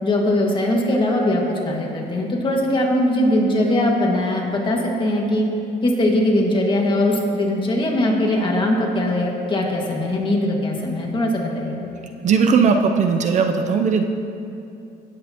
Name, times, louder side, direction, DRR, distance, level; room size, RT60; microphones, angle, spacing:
voice 1, 0.0-5.5 5.8-11.9, left 1 dB, 30° left, -1 dB, 1.9 m, -20 dB
voice 2, 12.2-14.0, right 5 dB, 45° right, 5 dB, 0.6 m, -18 dB
17.0 x 8.3 x 2.9 m, 2.7 s
cardioid pair, 110°, 17 cm